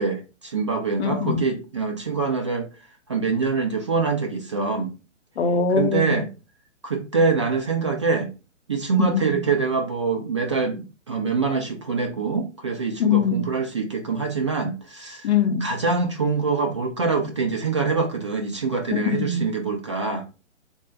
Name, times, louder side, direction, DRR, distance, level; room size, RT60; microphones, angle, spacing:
voice 1, 0.0-2.7 3.1-4.9 5.7-6.3 6.8-8.3 8.7-15.3 15.6-20.2, right 4 dB, 25° right, 0.4 m, -24 dB
voice 2, 1.0-1.4 5.4-6.2 9.0-9.4 13.0-13.5 15.2-15.6 19.1-19.5, left 6 dB, 60° left, 0.7 m, -22 dB
3.6 x 2.1 x 3.8 m
figure-of-eight pair, 130°, 37 cm